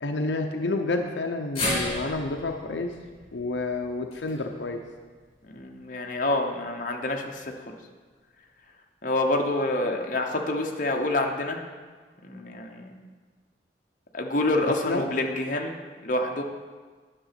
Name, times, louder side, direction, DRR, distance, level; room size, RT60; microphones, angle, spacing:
voice 1, 0.0-2.9 3.3-4.8 14.9-15.1, left 2 dB, 80° left, 4 dB, 0.7 m, -29 dB
sound 1, 1.6-5.8 6.2-6.3 7.4-7.5, left 1 dB, 30° left, 3.5 m, -35 dB
voice 2, 5.4-7.7 9.0-11.6 12.2-12.9 14.1-16.4, left 2 dB, 45° left, 2 dB, 1.0 m, -27 dB
9.9 x 6.9 x 5.8 m, 1.5 s
head